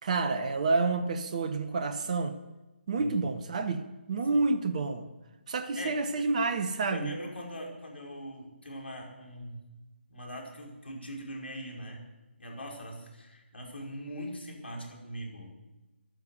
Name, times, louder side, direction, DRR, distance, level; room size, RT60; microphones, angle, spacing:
voice 1, 0.0-2.4 2.9-5.0 5.5-7.1, right 3 dB, 35° right, 1.0 m, -29 dB
voice 2, 2.9-3.3 4.3-4.4 5.7-6.2 6.9-9.6 10.1-12.0 12.4-15.5, equal, 60° left, 5.1 m, -41 dB
13.0 x 11.5 x 8.1 m
figure-of-eight pair, 145°, 6 cm